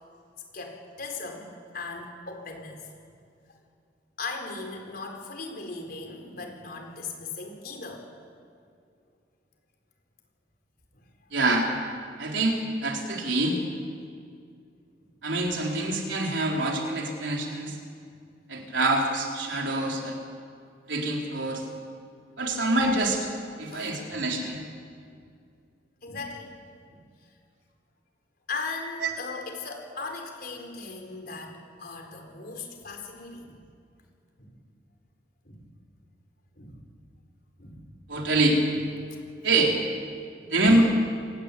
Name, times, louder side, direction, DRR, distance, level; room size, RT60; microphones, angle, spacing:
voice 1, 0.5-1.5 1.7-2.8 4.2-8.1 10.9-11.1 22.4-22.5 23.7-24.2 25.1-25.2 26.0-26.6 26.9-27.0 28.5-33.6 34.4-34.5 35.4-35.6 36.6-36.8 37.6-37.9 40.4-40.5, left 3 dB, 55° left, 3 dB, 4.4 m, -38 dB
voice 2, 11.3-11.7 12.2-13.6 15.2-17.8 18.5-20.2 20.9-21.6 22.4-23.3 23.6-24.6 29.0-29.1 38.1-38.6 39.4-39.7 40.5-40.8, right 2 dB, 85° right, 0 dB, 4.2 m, -25 dB
26.5 x 19.0 x 8.6 m, 2.3 s
head